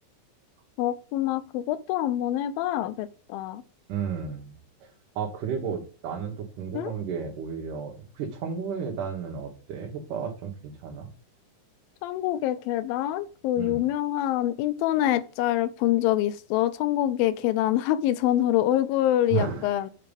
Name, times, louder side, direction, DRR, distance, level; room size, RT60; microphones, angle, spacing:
voice 1, 0.8-3.6 6.7-6.9 12.0-19.9, left 13 dB, 90° left, 2.4 m, -25 dB
voice 2, 3.9-4.5 4.8-11.1 13.6-13.8 19.3-19.7, right 7 dB, 70° right, 2.6 m, -33 dB
8.5 x 4.6 x 5.2 m
omnidirectional pair, 4.0 m